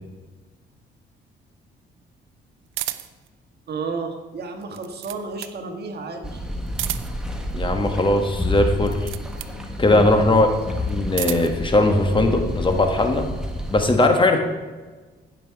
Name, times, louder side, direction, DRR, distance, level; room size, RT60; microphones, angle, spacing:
sound 1, 2.7-3.3 4.6-5.6 6.7-7.3 8.8-9.6 10.8-11.6, right 13 dB, 80° right, 0.6 m, -32 dB
voice 1, 3.7-6.4 10.2-10.7, right 4 dB, 55° right, 4 dB, 1.6 m, -32 dB
sound 2, 6.2-13.8, left 1 dB, 5° right, 1.6 m, -29 dB
voice 2, 7.5-9.0 9.8-10.5 10.9-13.3 13.7-14.4, left 2 dB, 25° left, 5 dB, 1.4 m, -19 dB
15.5 x 6.0 x 4.7 m, 1.3 s
cardioid pair, 90°, 20 cm